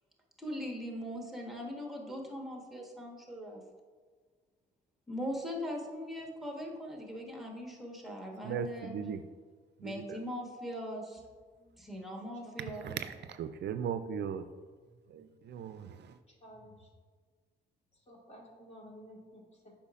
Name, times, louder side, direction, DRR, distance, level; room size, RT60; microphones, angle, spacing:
voice 1, 0.4-3.6 5.1-8.9 9.8-11.2 11.8-13.0, equal, ahead, 0 dB, 1.3 m, -40 dB
voice 2, 8.4-9.2 9.8-10.2 12.8-14.4 15.1-16.1, right 8 dB, 60° right, 10 dB, 0.4 m, -38 dB
voice 3, 11.6-12.0 12.4-12.9 16.4-16.9 18.1-19.7, equal, 35° left, -2 dB, 1.8 m, -53 dB
8.1 x 5.7 x 2.5 m, 1.5 s
cardioid pair, 90°, 20 cm